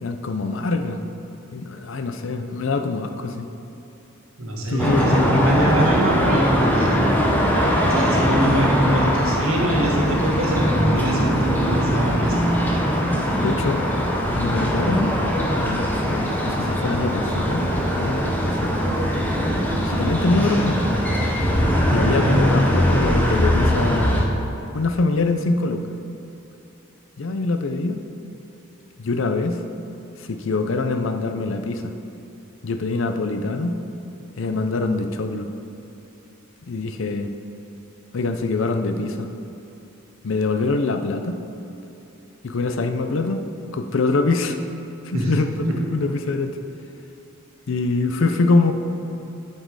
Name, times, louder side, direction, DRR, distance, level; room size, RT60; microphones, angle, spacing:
voice 1, 0.0-1.0 1.5-3.5 4.7-5.1 13.3-13.8 14.4-15.2 15.5-17.6 18.0-18.7 19.8-20.8 21.9-24.2 24.7-25.8 27.2-28.0 29.0-29.6 30.2-31.9 32.6-33.8 34.4-35.5 36.7-37.3 38.1-39.3 40.2-41.4 42.4-43.4 43.7-44.6 45.0-45.5 45.8-46.6 47.7-48.7, left 3 dB, 65° left, 7 dB, 0.5 m, -24 dB
voice 2, 4.4-7.0 7.9-12.4 22.1-22.4 45.1-45.3 45.6-45.7, right 1 dB, 80° right, -1 dB, 1.4 m, -23 dB
sound 1, 4.8-24.2, equal, 10° left, 0.7 m, -21 dB
11.5 x 4.5 x 4.7 m, 2.9 s
head